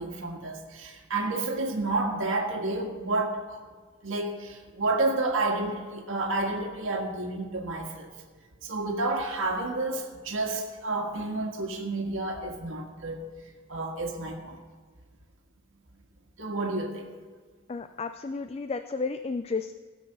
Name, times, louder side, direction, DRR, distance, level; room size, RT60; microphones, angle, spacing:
voice 1, 0.0-3.6 4.0-8.1 8.6-13.3 13.7-14.6 16.4-17.1, right 2 dB, 90° right, 2 dB, 1.8 m, -30 dB
voice 2, 17.7-19.8, left 4 dB, 30° left, 9 dB, 0.4 m, -32 dB
16.0 x 6.3 x 6.7 m, 1.5 s
head